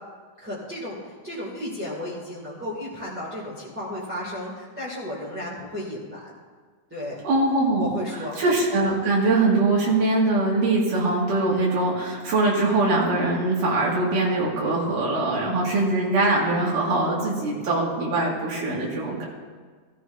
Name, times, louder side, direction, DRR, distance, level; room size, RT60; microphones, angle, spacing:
voice 1, 0.4-6.2 6.9-7.2 7.8-8.4, left 1 dB, 5° right, -8 dB, 1.6 m, -34 dB
voice 2, 7.2-7.9 8.4-19.2, right 2 dB, 85° right, -5 dB, 3.6 m, -22 dB
15.5 x 14.0 x 2.6 m, 1.5 s
omnidirectional pair, 3.6 m